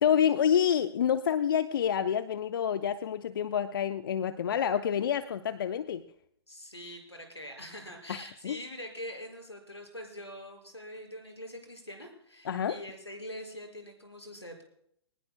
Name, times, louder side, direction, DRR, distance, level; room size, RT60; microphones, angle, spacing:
voice 1, 0.0-6.0 8.1-8.6 12.5-12.8, left 9 dB, 55° left, 11 dB, 0.7 m, -28 dB
voice 2, 6.5-14.6, equal, 90° left, 2 dB, 5.8 m, -44 dB
23.0 x 19.0 x 2.2 m, 0.70 s
figure-of-eight pair, 115°, 14 cm